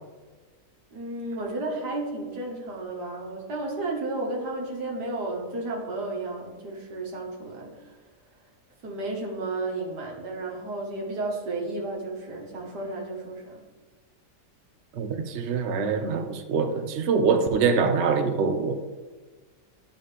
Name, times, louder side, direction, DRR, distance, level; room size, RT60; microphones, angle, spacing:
voice 1, 0.9-8.0 8.8-13.6, right 2 dB, 80° right, -2 dB, 2.0 m, -33 dB
voice 2, 14.9-18.7, right 5 dB, 60° right, 6 dB, 0.8 m, -24 dB
11.5 x 4.1 x 3.3 m, 1.3 s
omnidirectional pair, 1.7 m